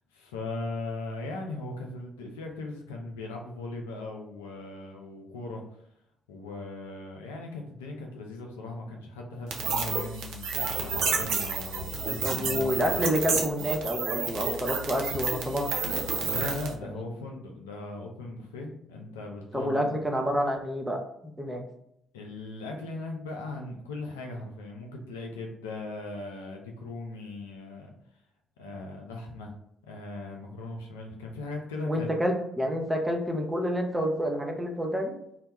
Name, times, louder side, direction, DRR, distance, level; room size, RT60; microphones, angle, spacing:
voice 1, 0.1-5.6 6.3-12.7 16.3-19.9 22.1-27.9 28.6-29.5 29.8-32.1, left 2 dB, 80° left, 1 dB, 0.3 m, -38 dB
sound 1, 9.5-16.7, right 4 dB, 65° right, 0.4 m, -30 dB
voice 2, 12.2-15.7 19.5-21.6 31.9-35.1, equal, 10° right, 2 dB, 0.6 m, -28 dB
2.1 x 2.1 x 2.9 m, 0.75 s
figure-of-eight pair, 45°, 0 cm